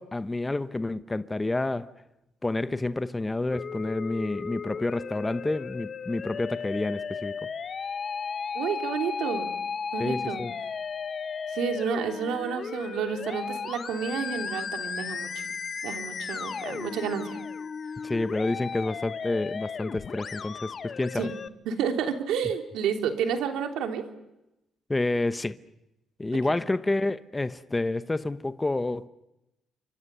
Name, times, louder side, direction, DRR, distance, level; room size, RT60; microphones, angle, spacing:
voice 1, 0.0-1.9 2.4-7.4 10.0-10.5 18.0-21.3 24.9-25.6 26.2-29.1, left 2 dB, 15° left, 0.9 m, -29 dB
Musical instrument, 3.5-21.5, left 6 dB, 45° left, 1.1 m, -35 dB
voice 2, 8.5-9.5 9.9-10.4 11.5-15.3 15.8-17.3 21.1-21.3 21.6-24.0, right 7 dB, 85° right, 3.0 m, -30 dB
29.5 x 25.0 x 6.9 m
cardioid pair, 90°, 0 cm